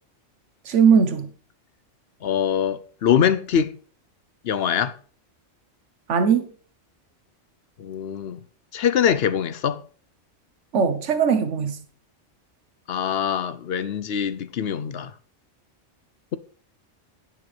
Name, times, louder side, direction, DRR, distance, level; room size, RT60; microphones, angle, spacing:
voice 1, 0.7-1.3 6.1-6.5 10.7-11.8, right 6 dB, 70° right, 1.4 m, -19 dB
voice 2, 2.2-3.7 4.4-4.9 7.8-8.4 8.7-9.8 12.9-15.1, left 8 dB, 60° left, 0.8 m, -23 dB
10.5 x 9.4 x 3.3 m
omnidirectional pair, 1.3 m